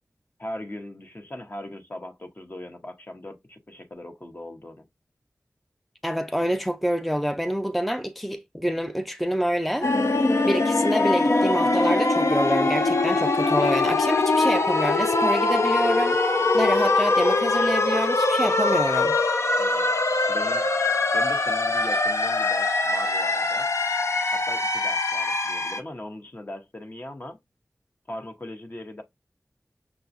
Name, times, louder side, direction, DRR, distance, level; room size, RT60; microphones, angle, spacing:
voice 1, 0.4-4.8 19.6-19.9 20.3-20.7 21.1-23.7 24.3-27.4 28.1-29.0, left 1 dB, 40° left, 0.8 m, -39 dB
voice 2, 6.0-9.9 10.4-16.2 16.5-19.2, equal, ahead, 0.4 m, -27 dB
sound 1, 9.8-25.8, left 2 dB, 65° left, 0.5 m, -22 dB
6.0 x 2.2 x 2.5 m
cardioid pair, 40°, 5 cm